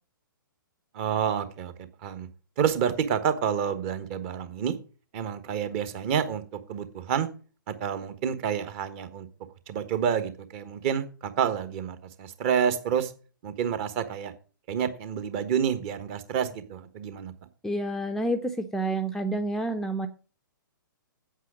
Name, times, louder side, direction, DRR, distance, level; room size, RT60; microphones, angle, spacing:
voice 1, 0.9-1.7 2.0-2.3 2.6-4.7 5.1-6.4 6.7-7.3 7.7-9.3 9.7-13.1 13.4-14.3 14.7-17.3, right 8 dB, 35° right, 1.3 m, -28 dB
voice 2, 17.6-20.1, right 1 dB, 5° left, 0.6 m, -29 dB
8.3 x 8.0 x 6.1 m
figure-of-eight pair, 120°, 11 cm